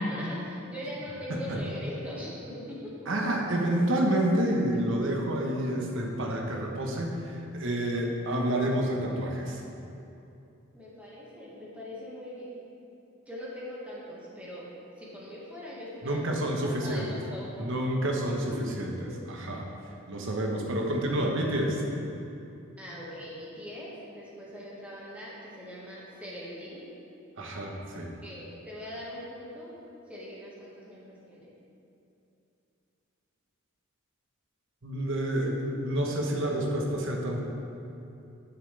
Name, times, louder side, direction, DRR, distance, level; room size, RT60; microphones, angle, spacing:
voice 1, 0.0-2.9 10.7-12.6 13.3-14.7 15.0-16.2 16.6-17.7 18.6-18.8 19.0-19.1 22.8-26.9 28.2-29.7 30.1-31.6, equal, 5° right, -7 dB, 1.7 m, -41 dB
voice 2, 1.3-1.6 3.1-9.6 16.0-17.1 17.6-18.9 19.3-19.7 20.1-21.8 27.4-28.1 34.8-37.4, right 1 dB, 60° right, 0 dB, 1.1 m, -29 dB
11.0 x 7.1 x 3.4 m, 2.8 s
head